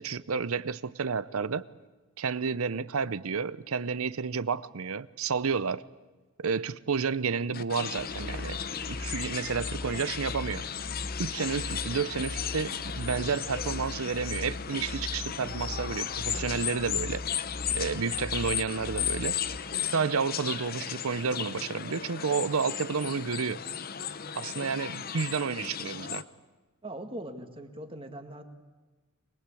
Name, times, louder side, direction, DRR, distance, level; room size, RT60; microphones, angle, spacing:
voice 1, 0.0-1.6 2.2-5.8 6.4-8.6 8.9-10.6 11.2-17.2 17.7-19.4 19.9-23.6 24.4-26.2, right 5 dB, 80° right, 17 dB, 0.7 m, -31 dB
sound 1, 7.5-26.2, left 9 dB, 45° left, 0.7 m, -35 dB
sound 2, 8.0-19.6, left 1 dB, ahead, 2.5 m, -40 dB
voice 2, 26.8-28.4, right 1 dB, 25° right, 5 dB, 1.9 m, -40 dB
24.0 x 21.0 x 8.4 m, 1.3 s
head